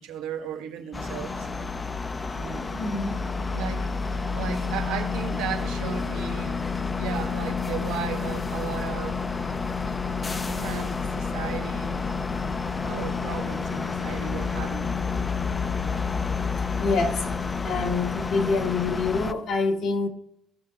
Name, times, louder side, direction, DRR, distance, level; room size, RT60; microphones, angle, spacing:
voice 1, 0.0-1.5 2.4-2.8 3.5-3.9 4.3-6.6 7.0-9.5 10.1-12.0 12.8-15.0, right 8 dB, 85° right, 1.2 m, -35 dB
sound 1, 0.9-19.3, left 4 dB, 25° left, 0.5 m, -29 dB
voice 2, 2.7-3.2 16.8-17.3 17.6-20.1, left 3 dB, 65° left, 1.6 m, -26 dB
16.0 x 6.6 x 2.4 m
supercardioid pair, 80°, 0 cm